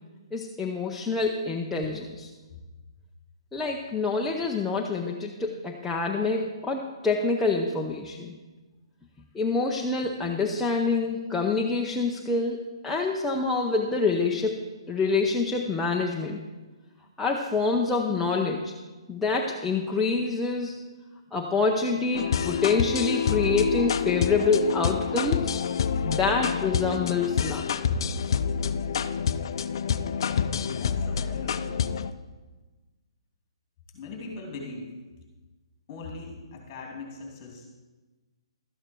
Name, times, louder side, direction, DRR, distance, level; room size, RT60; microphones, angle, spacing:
voice 1, 0.3-2.3 3.5-8.3 9.3-16.4 17.2-18.7 19.1-20.7 21.3-25.6 26.0-27.6, left 4 dB, 5° left, -1 dB, 0.6 m, -26 dB
sound 1, 22.1-32.1, left 7 dB, 50° left, 0.5 m, -27 dB
voice 2, 30.4-32.0 33.9-34.9 35.9-37.7, left 4 dB, 25° left, 1 dB, 2.8 m, -39 dB
13.0 x 8.9 x 4.5 m, 1.2 s
hypercardioid pair, 160°, 3 cm